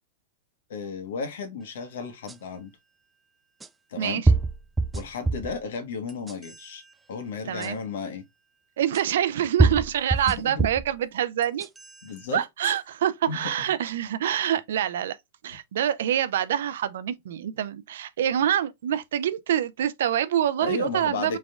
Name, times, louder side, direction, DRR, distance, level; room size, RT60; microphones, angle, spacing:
voice 1, 0.7-2.7 3.9-4.2 4.9-6.8 7.1-8.2 10.3-10.6 12.0-12.4 13.3-13.5 20.6-21.4, left 5 dB, 75° left, 1.3 m, -34 dB
sound 1, 2.3-2.4 3.6-3.7 4.3-5.6 6.1-6.7 7.6-7.7 8.9-9.0 9.6-10.9 11.4-12.0, right 3 dB, 10° right, 0.4 m, -24 dB
voice 2, 7.5-7.8 8.8-11.7 12.3-15.2 15.4-21.4, right 10 dB, 75° right, 0.5 m, -26 dB
4.1 x 3.6 x 2.2 m
hypercardioid pair, 125°, 0 cm